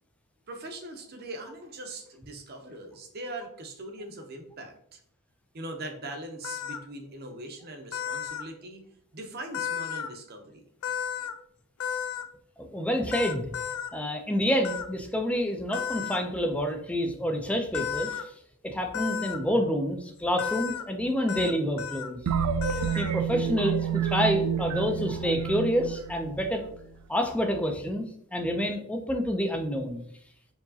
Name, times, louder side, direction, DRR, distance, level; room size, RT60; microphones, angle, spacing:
voice 1, 0.5-5.0 5.5-8.8 9.1-10.7, right 2 dB, 45° right, 4 dB, 0.6 m, -41 dB
sound 1, 6.4-6.8 7.9-8.4 9.5-10.1 10.8-11.3 11.8-12.2 13.1-13.9 14.6-14.9 15.7-16.2 17.7-18.2 18.9-19.4 20.4-20.8 21.3-21.5 21.8-22.1 22.6-23.1, left 8 dB, 80° left, 0.4 m, -33 dB
voice 2, 12.7-13.5 13.9-18.3 18.6-22.2 23.0-26.6 27.1-30.0, equal, 5° left, 4 dB, 0.4 m, -28 dB
sound 2, 22.3-26.9, right 8 dB, 90° right, 0.4 m, -29 dB
4.6 x 2.9 x 2.7 m, 0.67 s
head